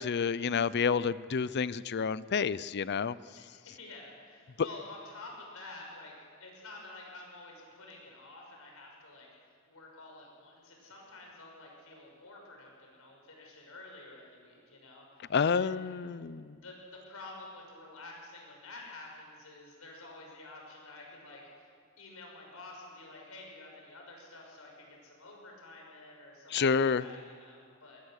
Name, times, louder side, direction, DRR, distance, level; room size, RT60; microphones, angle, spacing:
voice 1, 0.0-3.1 15.3-16.6 26.5-27.0, left 6 dB, 50° left, 18 dB, 0.5 m, -29 dB
voice 2, 3.4-15.8 16.6-21.7 22.0-28.0, left 2 dB, 85° left, 0 dB, 6.0 m, -50 dB
22.0 x 20.0 x 6.5 m, 2.2 s
head